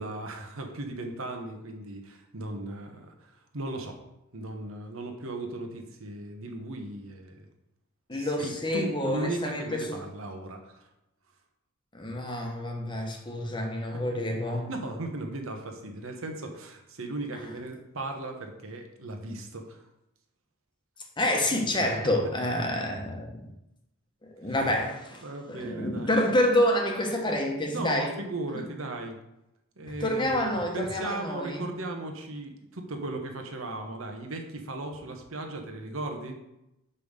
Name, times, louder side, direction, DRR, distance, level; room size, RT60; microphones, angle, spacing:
voice 1, 0.0-4.0 4.3-7.5 8.1-10.9 14.7-19.8 21.8-22.0 25.2-26.1 27.3-29.2 29.8-36.4, right 2 dB, 65° right, 4 dB, 1.2 m, -37 dB
voice 2, 8.1-10.0 11.9-14.7 21.2-23.5 24.2-28.1 30.0-31.7, left 1 dB, 20° left, 2 dB, 1.2 m, -28 dB
5.6 x 5.5 x 6.6 m, 0.89 s
head